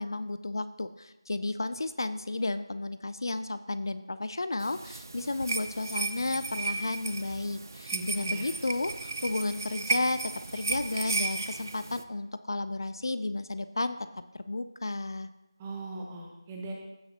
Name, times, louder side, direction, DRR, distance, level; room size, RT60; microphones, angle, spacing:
voice 1, 0.0-14.0 14.3-15.3, left 2 dB, 55° left, 12 dB, 0.5 m, -33 dB
sound 1, 4.6-12.0, right 3 dB, 40° right, 0.5 m, -34 dB
voice 2, 7.9-8.5 15.6-16.7, right 2 dB, 10° right, 0 dB, 0.9 m, -39 dB
16.0 x 7.0 x 2.8 m, 0.97 s
figure-of-eight pair, 170°, 3 cm